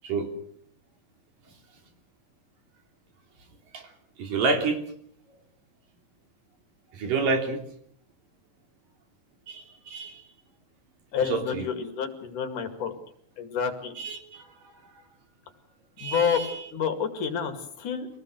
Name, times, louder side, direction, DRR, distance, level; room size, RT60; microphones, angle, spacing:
voice 1, 4.2-4.8 6.9-7.6 9.5-10.3 11.2-11.7 14.0-14.5 14.8-14.9 16.0-16.7, right 4 dB, 75° right, 4 dB, 5.0 m, -29 dB
voice 2, 11.1-12.9 13.4-14.0 16.0-16.4 16.7-18.1, left 7 dB, 65° left, 7 dB, 3.7 m, -28 dB
25.5 x 18.0 x 7.9 m, 0.66 s
omnidirectional pair, 4.0 m